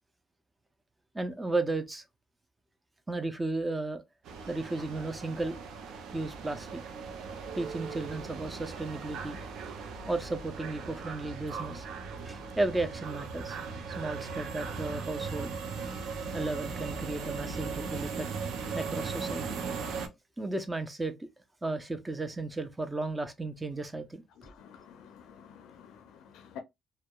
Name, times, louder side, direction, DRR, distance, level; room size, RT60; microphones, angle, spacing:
voice 1, 1.1-2.0 3.1-4.0 4.5-5.6 6.1-6.8 7.5-9.4 10.1-11.9 12.2-13.6 14.0-15.5 16.3-18.3 18.7-19.6 20.4-21.3 21.6-24.2, right 2 dB, 20° right, 0.5 m, -34 dB
sound 1, 4.3-20.1, right 5 dB, 80° right, 0.5 m, -38 dB
voice 2, 24.4-26.6, left 7 dB, 90° left, 0.4 m, -50 dB
2.7 x 2.1 x 2.2 m
cardioid pair, 90°, 0 cm